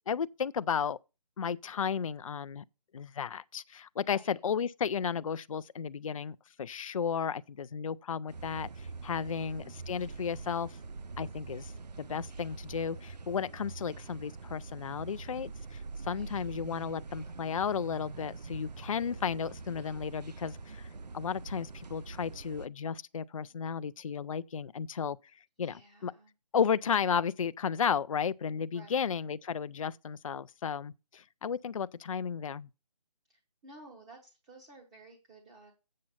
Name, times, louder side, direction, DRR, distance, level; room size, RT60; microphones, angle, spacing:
voice 1, 0.1-1.0 1.4-2.6 2.9-10.8 11.2-11.7 12.0-20.9 21.1-25.2 25.6-26.1 26.5-32.7, left 7 dB, 55° left, 0.4 m, -33 dB
voice 2, 4.0-4.4 9.2-9.8 16.0-16.4 25.6-26.3 28.7-29.1 33.3-35.7, right 2 dB, 10° right, 0.7 m, -55 dB
sound 1, 8.3-22.7, right 4 dB, 80° right, 0.7 m, -44 dB
7.6 x 7.5 x 5.7 m
figure-of-eight pair, 165°, 21 cm